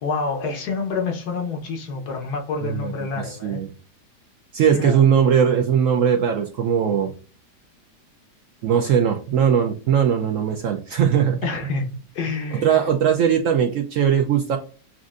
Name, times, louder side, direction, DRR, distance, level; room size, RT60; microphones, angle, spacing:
voice 1, 0.0-3.6 4.7-5.0 11.4-11.9 12.1-12.9, left 4 dB, 70° left, 1.5 m, -27 dB
voice 2, 2.6-3.7 4.5-7.1 8.6-11.5 12.6-14.6, right 8 dB, 70° right, 0.8 m, -20 dB
7.2 x 2.5 x 2.4 m
omnidirectional pair, 1.8 m